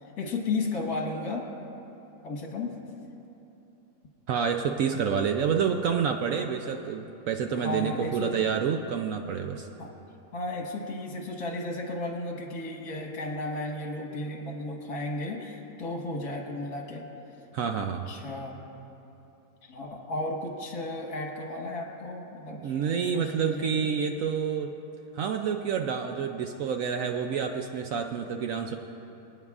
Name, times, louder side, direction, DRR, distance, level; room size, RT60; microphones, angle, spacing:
voice 1, 0.2-1.5 2.2-2.7 7.5-8.3 9.8-9.9 10.3-17.1 18.1-18.6 19.6-23.9, left 2 dB, 65° left, 1 dB, 1.9 m, -34 dB
voice 2, 4.3-9.7 17.5-18.1 22.6-24.8 25.1-28.8, right 7 dB, 70° right, 5 dB, 0.8 m, -28 dB
24.5 x 9.5 x 2.4 m, 3.0 s
omnidirectional pair, 1.8 m